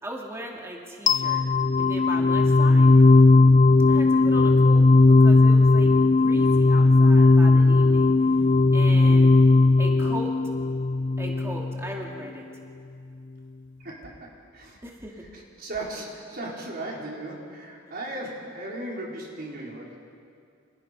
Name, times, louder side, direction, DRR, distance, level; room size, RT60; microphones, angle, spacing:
voice 1, 0.0-1.4 1.8-3.0 3.9-8.1 8.7-9.4 9.8-10.3 11.2-12.4 14.8-15.2, right 1 dB, 15° right, -1 dB, 2.5 m, -38 dB
sound 1, 1.1-12.0, left 3 dB, 40° left, 0.6 m, -17 dB
voice 2, 13.8-14.8 15.3-20.0, right 1 dB, 50° right, -3 dB, 5.0 m, -36 dB
30.0 x 27.0 x 5.5 m, 2.3 s
head